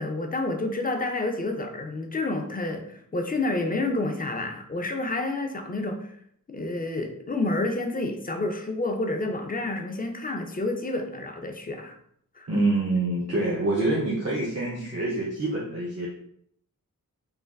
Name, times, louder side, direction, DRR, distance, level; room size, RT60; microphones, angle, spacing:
voice 1, 0.0-6.2 6.5-11.9 12.4-12.5, left 2 dB, 25° left, 4 dB, 0.4 m, -29 dB
voice 2, 12.5-16.1, right 2 dB, 50° right, -5 dB, 0.6 m, -26 dB
3.2 x 2.4 x 2.2 m, 0.68 s
wide cardioid pair, 40°, 34 cm